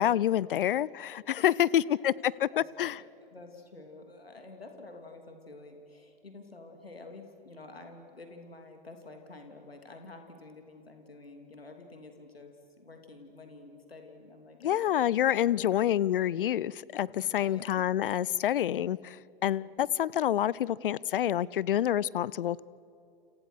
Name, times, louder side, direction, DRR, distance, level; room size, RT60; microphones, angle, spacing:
voice 1, 0.0-3.0 14.6-22.6, left 11 dB, 65° left, 0.7 m, -28 dB
voice 2, 1.4-1.8 2.2-15.8 17.3-17.8 19.6-19.9, left 3 dB, 85° left, 3.1 m, -49 dB
29.5 x 29.0 x 6.4 m
figure-of-eight pair, 100°, 29 cm